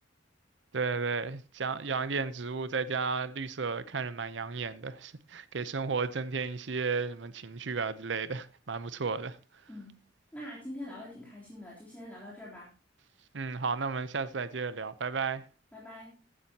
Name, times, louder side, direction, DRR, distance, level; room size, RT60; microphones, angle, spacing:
voice 1, 0.7-9.4 13.3-15.4, right 4 dB, 70° right, 0.7 m, -33 dB
voice 2, 9.7-10.0 10.3-12.7 15.7-16.2, left 1 dB, 10° left, 3.5 m, -44 dB
15.0 x 10.0 x 2.9 m
head